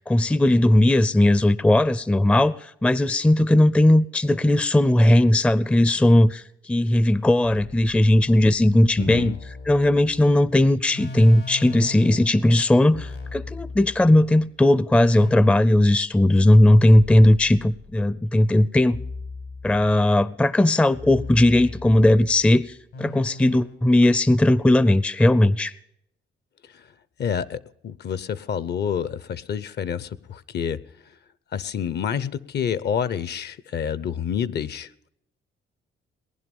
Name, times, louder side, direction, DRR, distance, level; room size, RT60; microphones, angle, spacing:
voice 1, 0.1-2.5 2.8-6.4 6.7-9.3 9.7-19.0 19.6-22.6 23.0-25.7, left 1 dB, 5° left, 0.4 m, -18 dB
sound 1, 7.4-14.4 14.9-16.1 16.9-18.1 18.9-20.2 20.9-23.8, left 3 dB, 90° left, 4.4 m, -39 dB
voice 2, 9.0-9.4 26.7-26.8 27.2-30.8 31.5-35.1, left 8 dB, 55° left, 0.7 m, -28 dB
19.5 x 11.0 x 5.3 m
cardioid pair, 90°, 20 cm